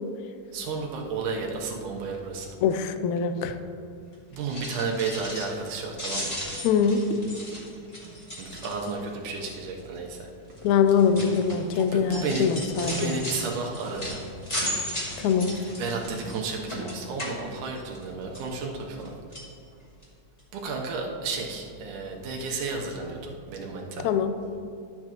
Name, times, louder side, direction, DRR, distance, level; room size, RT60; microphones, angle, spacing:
voice 1, 0.5-2.5 4.3-6.4 8.4-10.3 11.8-12.5 12.8-14.2 15.8-19.2 20.5-24.1, right 4 dB, 90° right, 0 dB, 2.5 m, -32 dB
voice 2, 2.6-3.6 6.6-7.2 10.6-13.2 15.2-15.6 24.0-24.3, left 6 dB, 80° left, 9 dB, 1.8 m, -23 dB
sound 1, 4.4-5.7 5.9-9.1 9.4-9.8 10.5-18.0 18.3-19.1 19.3-19.5 20.0-20.1 20.4-20.5, equal, 15° left, 1.9 m, -36 dB
12.0 x 8.5 x 3.0 m, 2.5 s
omnidirectional pair, 3.6 m